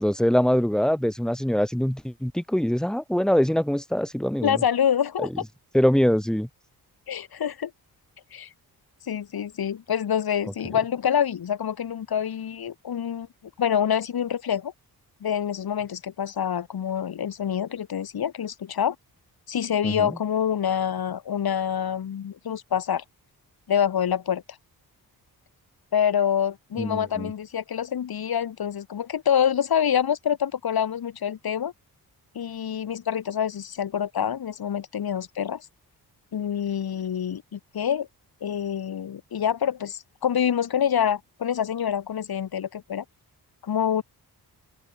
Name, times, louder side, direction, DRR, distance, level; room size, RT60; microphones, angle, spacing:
voice 1, 0.0-4.6 5.2-5.3 5.7-6.5 19.8-20.1 26.8-27.3, equal, ahead, 3.3 m, -23 dB
voice 2, 4.4-5.4 7.1-7.7 8.3-8.5 9.1-13.3 13.6-14.7 15.2-19.0 19.5-23.0 23.7-24.4 25.9-31.7 32.4-35.7 36.3-38.1 38.4-43.0 43.6-44.0, left 8 dB, 70° left, 3.5 m, -26 dB
open air
wide cardioid pair, 170°, 39 cm